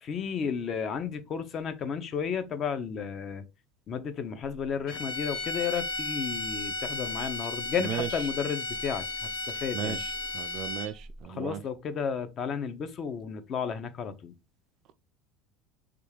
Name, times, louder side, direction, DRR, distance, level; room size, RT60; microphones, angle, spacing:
voice 1, 0.0-3.4 3.9-10.0 11.3-14.3, left 6 dB, 35° left, 0.5 m, -33 dB
sound 1, 4.9-11.1, left 2 dB, 55° left, 0.9 m, -34 dB
voice 2, 9.7-11.6, right 10 dB, 45° right, 0.3 m, -35 dB
3.4 x 2.3 x 3.2 m
cardioid pair, 145°, 0 cm